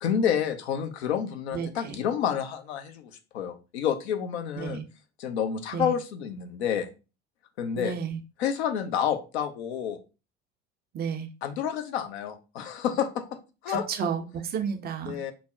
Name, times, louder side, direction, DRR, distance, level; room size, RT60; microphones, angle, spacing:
voice 1, 0.0-4.8 5.2-6.9 7.6-7.9 8.4-10.0 11.4-14.1 15.1-15.3, left 8 dB, 70° left, 8 dB, 0.6 m, -29 dB
voice 2, 1.5-2.0 4.6-4.8 5.7-5.9 7.8-8.2 10.9-11.3 13.7-15.2, right 7 dB, 30° right, 7 dB, 0.4 m, -32 dB
3.4 x 2.0 x 3.5 m, 0.31 s
figure-of-eight pair, 65°, 34 cm